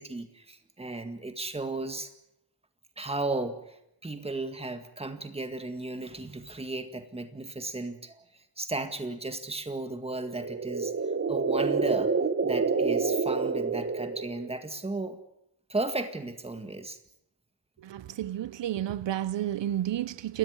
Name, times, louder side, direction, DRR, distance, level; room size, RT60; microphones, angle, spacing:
voice 1, 0.0-2.1 3.0-3.8 4.0-8.2 8.6-15.2 15.7-17.0, right 2 dB, 15° right, 2.0 m, -35 dB
sound 1, 10.2-14.6, right 4 dB, 30° right, 1.4 m, -28 dB
voice 2, 17.8-20.4, right 12 dB, 80° right, 0.8 m, -31 dB
29.0 x 13.5 x 9.8 m
wide cardioid pair, 175°, 43 cm